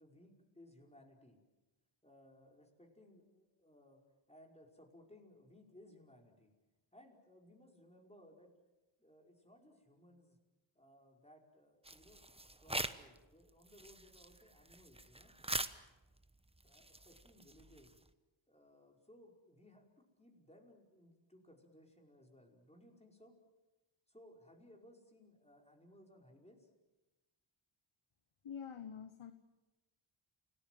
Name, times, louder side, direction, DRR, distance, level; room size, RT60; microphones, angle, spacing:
voice 1, 0.0-1.4 2.0-4.0 4.3-6.5 6.9-8.5 9.0-10.4 10.7-12.2 12.6-15.3 16.6-18.0 18.5-23.3 24.1-26.7, left 1 dB, 10° left, 1 dB, 5.1 m, -62 dB
sound 1, 11.8-13.2 13.5-18.1, right 2 dB, 10° right, 1.1 m, -44 dB
voice 2, 28.4-29.3, left 7 dB, 75° left, 10 dB, 1.3 m, -46 dB
29.0 x 19.0 x 7.7 m, 1.1 s
wide cardioid pair, 65°, 50 cm